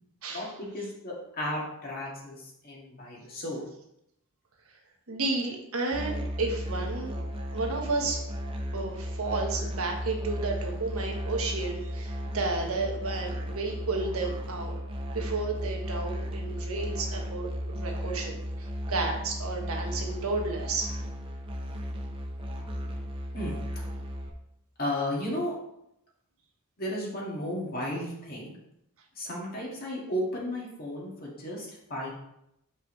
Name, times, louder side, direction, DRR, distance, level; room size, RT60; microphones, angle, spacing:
voice 1, 0.3-3.6 23.3-23.5 24.0-24.1 24.8-25.5 26.8-28.5 29.2-32.1, left 1 dB, 45° left, -4 dB, 2.2 m, -34 dB
voice 2, 5.1-7.2 7.5-8.2 8.7-14.8 15.1-20.9, right 3 dB, 75° right, 1 dB, 1.4 m, -32 dB
Musical instrument, 5.9-24.3, equal, 25° right, 0.8 m, -35 dB
7.3 x 5.4 x 3.2 m, 0.80 s
head